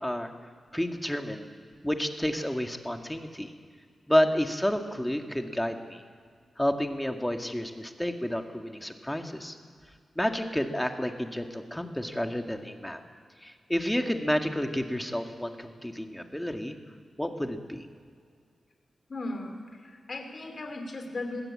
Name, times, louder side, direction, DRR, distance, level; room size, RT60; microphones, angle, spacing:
voice 1, 0.7-1.5 1.8-3.5 4.1-6.0 6.6-9.6 10.2-13.0 13.4-16.8 17.2-17.9, equal, 5° left, 4 dB, 2.1 m, -30 dB
voice 2, 19.1-21.4, left 2 dB, 50° left, 4 dB, 3.3 m, -37 dB
21.0 x 16.0 x 8.8 m, 2.1 s
cardioid pair, 65°, 0 cm